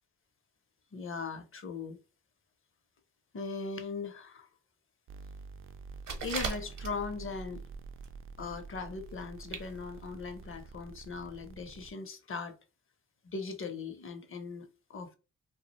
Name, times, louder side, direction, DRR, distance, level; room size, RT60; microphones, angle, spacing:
voice 1, 0.9-2.0 3.3-4.5 6.2-7.6 8.4-12.5 13.2-15.1, left 4 dB, 40° left, 0.6 m, -39 dB
sound 1, 5.1-11.9, right 4 dB, 40° right, 0.4 m, -48 dB
sound 2, 5.8-7.3 7.7-8.2 8.4-8.5 9.2-9.3 9.5-9.7 10.0-10.1 10.6-10.7, right 4 dB, 60° right, 0.8 m, -38 dB
2.3 x 2.1 x 2.8 m
supercardioid pair, 50°, 33 cm